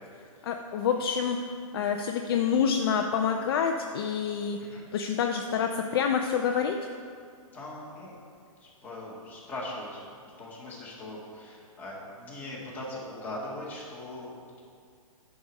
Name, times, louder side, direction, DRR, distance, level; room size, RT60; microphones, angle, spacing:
voice 1, 0.4-1.4 1.7-4.6 4.9-6.8, left 7 dB, 40° left, 4 dB, 0.4 m, -27 dB
voice 2, 7.5-8.1 8.6-14.3, left 1 dB, 10° left, -6 dB, 1.7 m, -40 dB
10.0 x 4.8 x 5.2 m, 2.2 s
hypercardioid pair, 155°, 18 cm